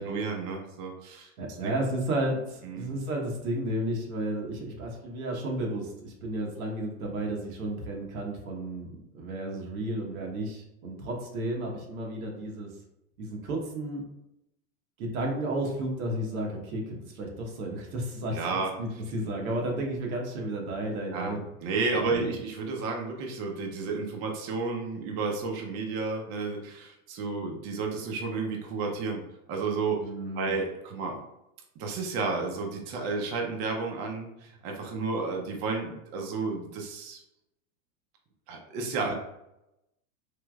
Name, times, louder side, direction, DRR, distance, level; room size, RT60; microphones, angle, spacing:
voice 1, 0.0-1.3 1.6-1.7 2.6-2.9 18.3-18.7 21.1-21.3 21.6-29.2 29.5-30.0 30.3-31.2 31.8-37.2 38.5-39.1, right 4 dB, 45° right, 1 dB, 0.6 m, -32 dB
voice 2, 1.4-12.7 13.2-14.0 15.0-18.4 18.8-21.4 21.9-22.4 30.0-30.5 39.0-39.1, right 1 dB, 90° right, 0 dB, 1.1 m, -33 dB
3.2 x 2.9 x 2.3 m, 0.88 s
supercardioid pair, 140°, 41 cm